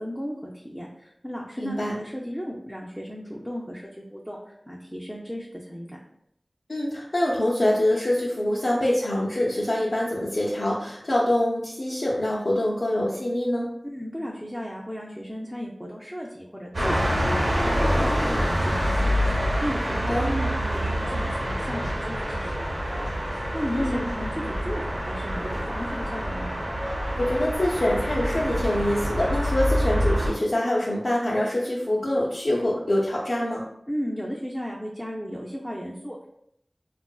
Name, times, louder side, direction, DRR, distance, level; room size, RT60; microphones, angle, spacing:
voice 1, 0.0-6.0 13.8-17.5 17.8-26.6 33.9-36.3, equal, 5° right, -3 dB, 0.4 m, -35 dB
voice 2, 1.6-2.0 6.7-13.7 19.9-20.3 23.7-24.1 27.2-33.7, left 1 dB, 80° left, -7 dB, 0.5 m, -25 dB
sound 1, 16.7-30.3, equal, 80° right, 0.9 m, -26 dB
3.5 x 2.4 x 2.3 m, 0.75 s
wide cardioid pair, 50°, 0 cm